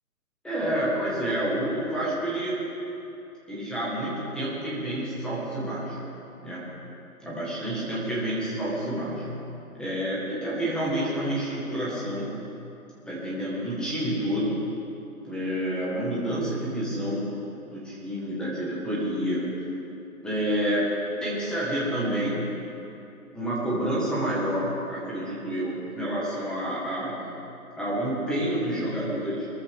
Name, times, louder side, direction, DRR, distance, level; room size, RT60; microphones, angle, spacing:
voice 1, 0.4-2.6 3.5-6.0 6.4-6.6 7.2-9.3 9.7-12.4 13.1-14.6 15.2-17.3 17.7-19.5 20.2-20.9 21.2-22.5 23.3-27.2 27.8-29.5, right 1 dB, ahead, -8 dB, 1.5 m, -28 dB
22.0 x 14.0 x 3.6 m, 2.8 s
hypercardioid pair, 165°, 45 cm